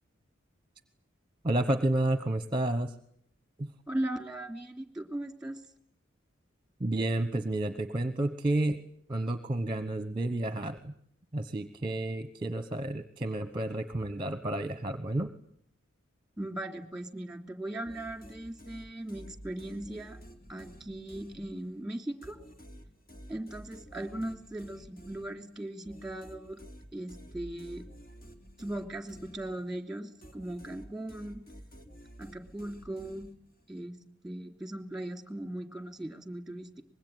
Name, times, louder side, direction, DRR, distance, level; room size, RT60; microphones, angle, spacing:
voice 1, 1.4-2.9 3.6-3.7 6.8-8.8 9.1-10.9 11.3-15.3, right 1 dB, 25° right, 11 dB, 1.0 m, -30 dB
voice 2, 3.9-5.6 16.4-20.2 20.5-22.4 23.3-26.6 26.9-27.8 28.6-31.4 32.2-33.3 33.7-33.9 34.2-36.8, right 1 dB, 5° right, 7 dB, 2.9 m, -38 dB
sound 1, 17.8-21.8 22.2-29.8 30.2-33.7, equal, 45° left, 3.4 m, -51 dB
24.5 x 21.5 x 9.3 m, 0.66 s
head